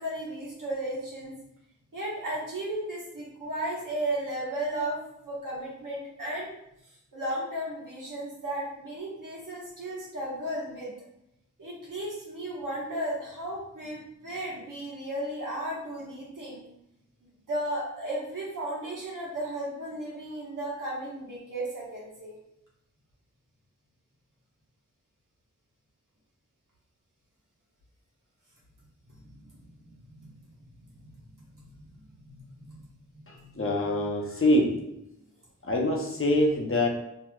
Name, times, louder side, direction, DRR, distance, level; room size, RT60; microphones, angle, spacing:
voice 1, 0.0-1.3 1.9-5.0 5.2-6.5 7.1-10.9 11.6-16.6 17.5-22.3 29.1-30.4 30.8-31.0 31.5-34.1, right 1 dB, 85° right, -6 dB, 1.1 m, -35 dB
voice 2, 33.3-34.8 35.6-36.9, left 1 dB, 45° left, -1 dB, 0.6 m, -25 dB
2.9 x 2.7 x 2.3 m, 0.81 s
wide cardioid pair, 65°, 31 cm